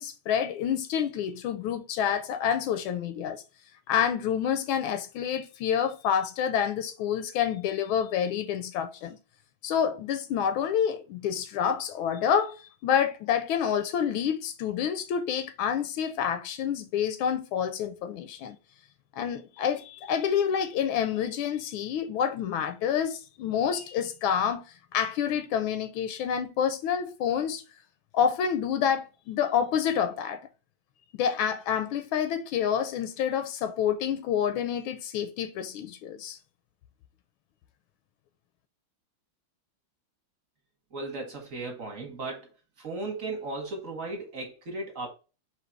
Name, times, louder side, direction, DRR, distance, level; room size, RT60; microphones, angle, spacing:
voice 1, 0.0-3.4 3.9-9.2 9.6-18.6 19.1-24.6 24.9-27.6 28.1-30.4 31.2-36.4, left 8 dB, 80° left, 1.4 m, -28 dB
voice 2, 40.9-42.5 42.8-45.1, right 2 dB, 45° right, 1.3 m, -36 dB
4.0 x 2.9 x 4.4 m
omnidirectional pair, 2.3 m